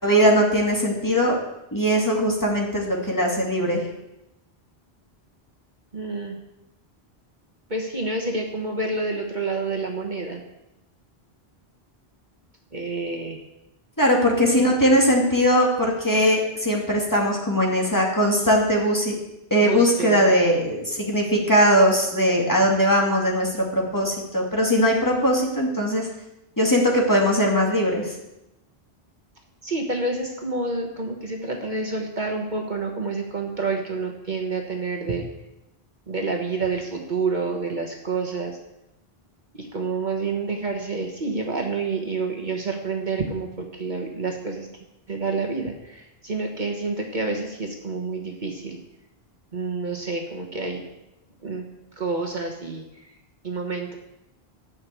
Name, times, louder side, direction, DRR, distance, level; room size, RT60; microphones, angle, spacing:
voice 1, 0.0-1.4 1.7-3.8 14.0-19.1 19.5-26.1 26.6-28.2, equal, 20° left, -2 dB, 2.4 m, -20 dB
voice 2, 5.9-6.4 7.7-10.4 12.7-13.4 19.6-20.3 29.6-35.3 36.1-38.6 39.5-44.7 45.1-48.8 49.5-50.8 51.4-51.7 52.0-52.8 53.4-53.9, right 3 dB, 45° right, 2 dB, 1.4 m, -28 dB
12.5 x 6.3 x 8.3 m, 0.91 s
omnidirectional pair, 1.1 m